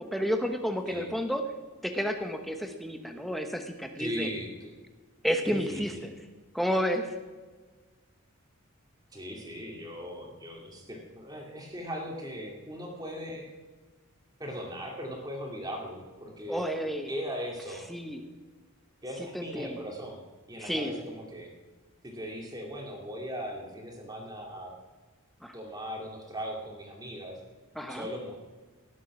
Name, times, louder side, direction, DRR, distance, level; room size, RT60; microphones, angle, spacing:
voice 1, 0.0-1.4 1.8-4.3 5.2-6.1 6.5-7.1 16.5-17.1 17.9-18.2 19.3-19.8 20.6-20.9 25.4-25.5 27.8-28.0, equal, ahead, 5 dB, 1.0 m, -31 dB
voice 2, 4.0-4.7 5.4-6.0 9.1-13.5 14.4-16.7 17.1-17.9 19.0-20.2 20.5-21.5 22.0-24.7 25.5-27.4 27.9-28.4, equal, 15° right, 0 dB, 2.4 m, -39 dB
17.5 x 7.5 x 6.1 m, 1.3 s
head